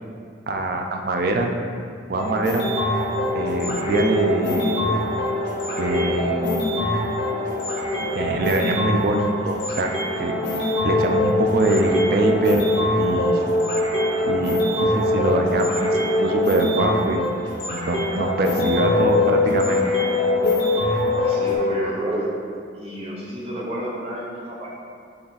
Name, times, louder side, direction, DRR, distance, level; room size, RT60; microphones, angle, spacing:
voice 1, 0.5-1.5 2.1-2.6 3.3-4.8 5.8-6.6 8.1-9.9 10.2-12.6 13.0-13.4 14.3-17.3 17.7-19.8, right 2 dB, 50° right, 3 dB, 0.4 m, -23 dB
sound 1, 2.2-21.6, left 1 dB, 60° left, 1.2 m, -23 dB
voice 2, 21.1-22.3 22.7-24.7, right 1 dB, 30° right, -5 dB, 0.8 m, -30 dB
3.9 x 3.3 x 4.0 m, 2.2 s
head